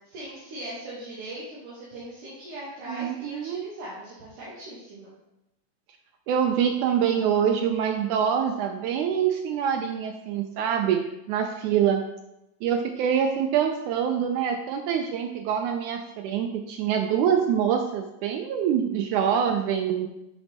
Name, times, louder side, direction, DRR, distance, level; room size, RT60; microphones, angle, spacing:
voice 1, 0.0-5.1, right 1 dB, 70° right, -7 dB, 2.6 m, -40 dB
voice 2, 2.9-3.7 6.3-12.0 12.6-20.1, right 8 dB, 85° right, 5 dB, 1.7 m, -25 dB
10.0 x 4.0 x 3.4 m, 0.89 s
omnidirectional pair, 3.9 m